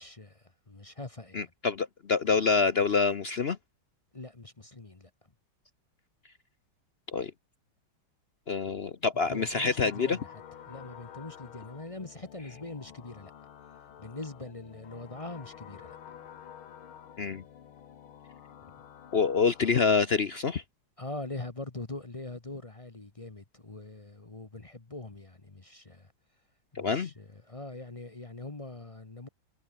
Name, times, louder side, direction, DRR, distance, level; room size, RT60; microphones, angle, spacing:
voice 1, 0.0-1.5 4.1-5.3 9.3-13.3 14.0-16.0 21.0-26.1 26.7-29.3, left 2 dB, 20° left, 1.0 m, -42 dB
voice 2, 1.3-3.6 7.1-7.3 8.5-10.2 17.2-17.4 19.1-20.6 26.8-27.1, left 5 dB, 65° left, 0.6 m, -26 dB
sound 1, 9.2-19.8, left 9 dB, 85° left, 2.3 m, -50 dB
omnidirectional pair, 2.2 m